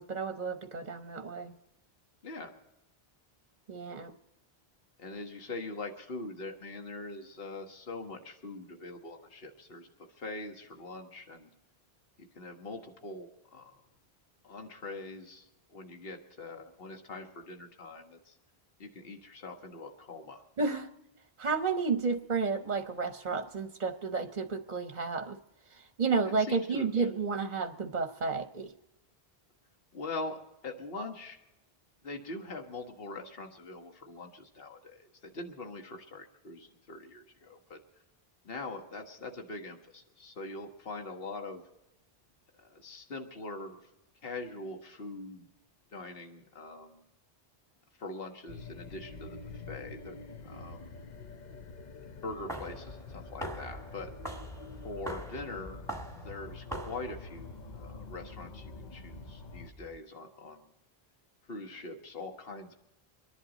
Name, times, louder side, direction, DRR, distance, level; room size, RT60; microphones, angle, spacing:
voice 1, 0.0-1.5 3.7-4.1 20.6-20.9 21.4-25.4 25.7-28.7, right 4 dB, 50° right, 7 dB, 0.9 m, -32 dB
voice 2, 5.0-9.9 10.2-11.5 12.2-13.7 14.4-18.4 18.8-20.4 26.2-26.9 29.9-31.4 32.0-37.8 38.4-41.6 42.6-43.8 44.2-45.5 45.9-47.0 48.0-49.4 49.7-50.2 50.4-51.0 52.2-54.1 54.8-55.8 56.2-60.7 61.5-62.7, left 2 dB, 70° left, 4 dB, 1.6 m, -43 dB
sound 1, 48.5-59.7, left 4 dB, 50° left, 0.8 m, -47 dB
sound 2, 52.3-60.0, right 1 dB, 5° left, 1.8 m, -44 dB
25.0 x 11.0 x 4.0 m, 0.90 s
omnidirectional pair, 1.0 m